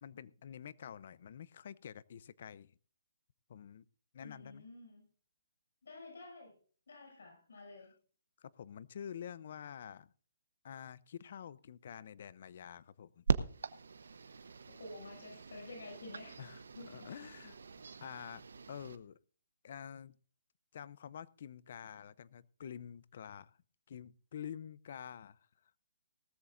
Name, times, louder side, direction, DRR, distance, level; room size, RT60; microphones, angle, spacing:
voice 1, 0.0-2.7 3.5-3.9 4.1-4.6 8.4-10.1 10.6-13.2 16.4-17.6 18.0-19.2 19.6-20.2 20.7-23.6 23.9-25.5, left 8 dB, 50° left, 20 dB, 0.5 m, -48 dB
voice 2, 4.2-5.0 5.8-6.6 6.9-7.9 14.2-14.4 14.7-17.0, left 2 dB, 85° left, 0 dB, 6.6 m, -51 dB
sound 1, 13.3-19.0, right 5 dB, 80° right, 0.9 m, -40 dB
18.5 x 13.5 x 2.5 m, 0.42 s
hypercardioid pair, 165°, 0 cm